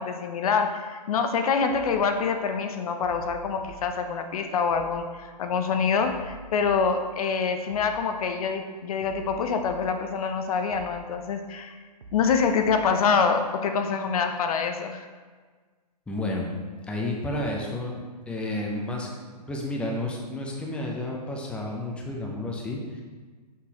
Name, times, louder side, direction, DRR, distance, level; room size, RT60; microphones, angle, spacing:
voice 1, 0.0-11.8 12.1-15.1, left 5 dB, 60° left, 6 dB, 0.6 m, -26 dB
sound 1, 1.7-2.0 3.0-3.9 4.7-5.0 6.0-6.9 7.7-8.0 9.0-9.9 10.7-11.0 12.0-12.9, right 3 dB, 80° right, 0.8 m, -45 dB
voice 2, 16.1-16.5 16.9-23.0, left 1 dB, 5° left, -1 dB, 0.6 m, -31 dB
6.1 x 5.4 x 2.9 m, 1.5 s
hypercardioid pair, 130°, 21 cm